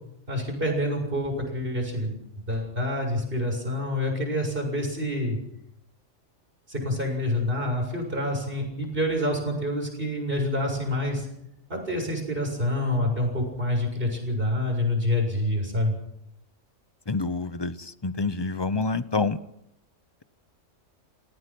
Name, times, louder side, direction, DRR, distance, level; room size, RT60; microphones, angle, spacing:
voice 1, 0.3-2.2 2.5-5.4 6.7-11.3 11.7-16.0, left 1 dB, 45° right, 2 dB, 7.5 m, -27 dB
voice 2, 17.1-19.4, left 3 dB, 25° left, 14 dB, 0.7 m, -27 dB
29.0 x 18.5 x 6.2 m, 0.80 s
omnidirectional pair, 1.4 m